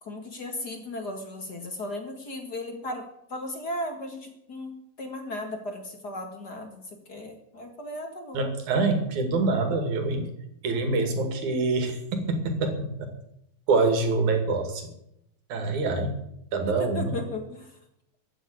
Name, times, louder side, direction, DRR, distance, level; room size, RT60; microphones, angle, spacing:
voice 1, 0.0-8.4 16.8-17.8, left 1 dB, 40° left, 5 dB, 2.1 m, -36 dB
voice 2, 8.3-10.3 10.6-13.1 13.7-14.9 15.5-16.1 16.5-17.1, right 3 dB, 85° right, 6 dB, 3.7 m, -25 dB
15.0 x 7.9 x 9.8 m, 0.79 s
omnidirectional pair, 3.3 m